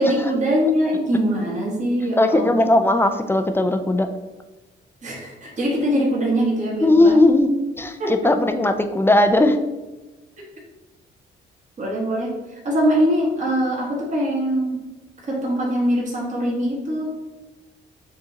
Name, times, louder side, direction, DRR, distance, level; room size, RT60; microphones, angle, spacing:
voice 1, 0.0-2.8 5.0-7.2 8.0-8.2 11.8-14.8 15.3-17.1, equal, 40° right, -4 dB, 1.4 m, -22 dB
voice 2, 2.2-4.1 6.8-7.5 7.7-9.6, left 2 dB, 10° left, 7 dB, 0.4 m, -17 dB
6.7 x 2.7 x 2.8 m, 1.1 s
cardioid pair, 90°, 20 cm